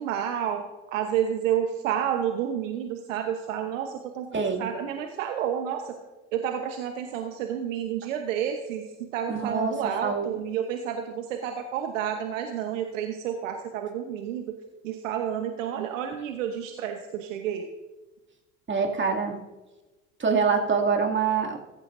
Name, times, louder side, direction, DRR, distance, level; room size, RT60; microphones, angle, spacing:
voice 1, 0.0-5.9 6.3-14.5 14.8-17.7, right 9 dB, 85° right, 5 dB, 1.0 m, -30 dB
voice 2, 4.3-4.7 9.3-9.7 10.0-10.3 18.7-19.4 20.2-21.6, right 5 dB, 30° right, 1 dB, 2.5 m, -25 dB
15.0 x 14.5 x 2.6 m, 1.2 s
hypercardioid pair, 70°, 37 cm